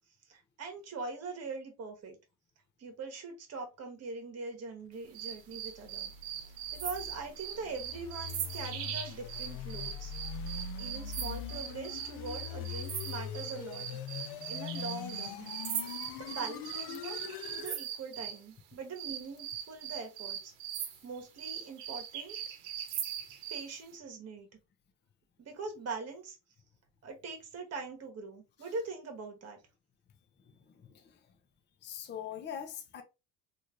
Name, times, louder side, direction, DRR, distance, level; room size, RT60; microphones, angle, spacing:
voice 1, 0.2-2.2 2.8-6.1 6.7-10.1 10.8-13.8 14.5-15.5 16.2-22.4 23.5-24.5 25.4-26.4 27.0-29.6, right 4 dB, 40° right, 1.1 m, -42 dB
sound 1, 5.1-18.4 19.0-23.7, right 9 dB, 90° right, 0.8 m, -40 dB
sound 2, 5.7-17.8, left 8 dB, 80° left, 0.5 m, -42 dB
voice 2, 30.4-31.3 31.8-33.0, left 9 dB, 30° left, 0.5 m, -43 dB
3.1 x 2.6 x 2.5 m
cardioid pair, 130°, 38 cm